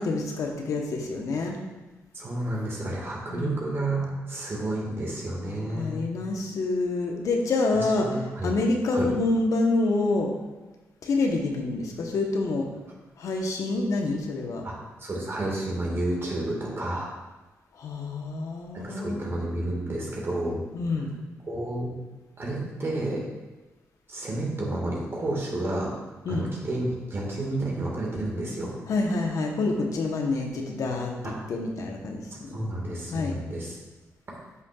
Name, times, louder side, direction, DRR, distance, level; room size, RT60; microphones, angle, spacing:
voice 1, 0.0-1.6 3.3-3.6 5.5-8.1 8.4-10.3 11.0-12.7 13.2-14.7 17.7-19.2 20.7-21.1 26.2-26.5 28.9-32.6 33.1-33.3, left 3 dB, 70° left, 2 dB, 1.2 m, -27 dB
voice 2, 2.1-6.1 7.7-8.5 8.9-9.1 14.6-17.1 18.7-20.6 20.9-21.0 21.4-22.0 22.4-23.3 24.1-26.0 26.3-28.7 31.3-31.5 32.5-33.8, right 1 dB, 45° right, -3 dB, 1.9 m, -31 dB
9.5 x 5.8 x 2.5 m, 1.2 s
cardioid pair, 65°, 6 cm